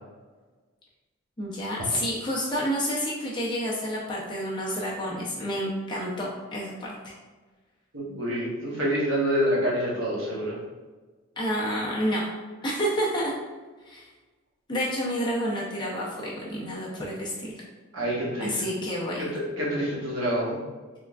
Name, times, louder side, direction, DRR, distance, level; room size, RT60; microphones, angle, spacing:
voice 1, 1.4-7.1 11.4-12.3 12.6-13.3 13.9-14.1 14.7-17.6 18.4-19.3, equal, 20° left, -5 dB, 0.7 m, -29 dB
voice 2, 7.9-10.6 17.9-18.7 19.2-20.6, equal, 75° right, -5 dB, 1.2 m, -27 dB
3.7 x 3.4 x 2.4 m, 1.3 s
head